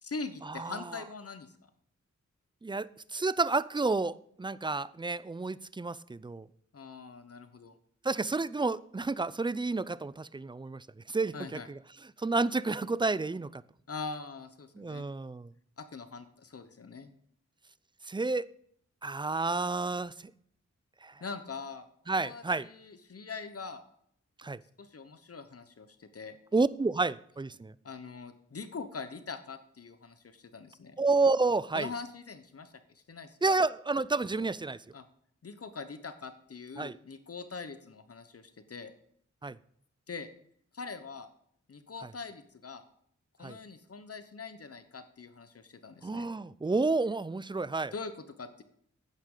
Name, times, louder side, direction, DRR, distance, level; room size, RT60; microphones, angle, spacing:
voice 1, 0.0-1.7 6.7-7.8 11.3-11.7 13.9-15.1 15.8-17.1 21.2-23.8 24.8-26.4 27.8-31.0 31.7-33.4 34.9-35.0 35.4-38.9 40.1-40.3 40.7-41.3 41.7-42.8 43.4-46.3 47.9-48.6, left 4 dB, 50° left, 10 dB, 1.0 m, -43 dB
voice 2, 2.6-6.5 8.0-11.8 12.2-13.6 14.8-15.5 18.0-18.5 19.0-20.1 21.0-21.1 22.1-22.7 24.4-24.6 26.5-27.7 31.0-31.9 33.4-34.8 36.8-37.0 39.4-39.6 43.4-43.6 46.0-47.9, right 3 dB, 15° right, 18 dB, 0.4 m, -30 dB
11.0 x 9.4 x 3.8 m, 0.65 s
cardioid pair, 65°, 30 cm